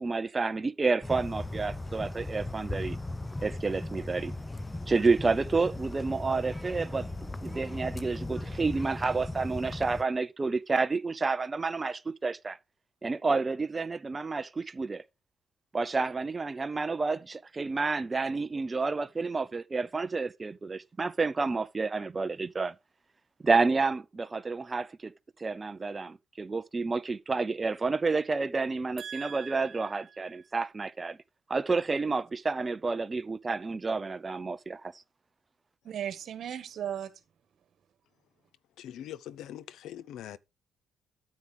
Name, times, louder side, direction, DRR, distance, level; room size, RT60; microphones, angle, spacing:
voice 1, 0.0-3.0 3.4-4.3 4.9-12.6 13.0-15.0 15.7-22.7 23.4-25.1 25.4-31.2 31.5-34.9, right 4 dB, 25° right, 0.6 m, -30 dB
sound 1, 1.0-10.0, left 2 dB, 15° left, 0.6 m, -38 dB
voice 2, 29.0-30.0 35.8-37.1, right 9 dB, 65° right, 1.5 m, -37 dB
voice 3, 38.8-40.4, left 11 dB, 80° left, 0.6 m, -42 dB
9.5 x 7.5 x 3.4 m
cardioid pair, 90°, 0 cm